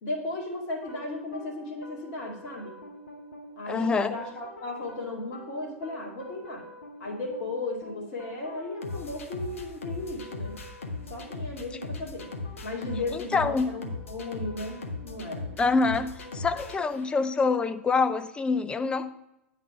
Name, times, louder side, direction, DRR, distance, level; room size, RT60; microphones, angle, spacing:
voice 1, 0.0-2.7 3.6-6.7 7.0-10.6 11.1-12.3 12.6-14.8 15.0-15.4, left 2 dB, 45° left, -1 dB, 2.3 m, -35 dB
sound 1, 0.8-17.5, left 2 dB, 70° left, 1.1 m, -40 dB
voice 2, 3.7-4.2 13.1-13.7 15.6-19.1, left 4 dB, 15° left, 11 dB, 0.4 m, -26 dB
8.9 x 4.2 x 5.6 m, 0.87 s
figure-of-eight pair, 100°, 7 cm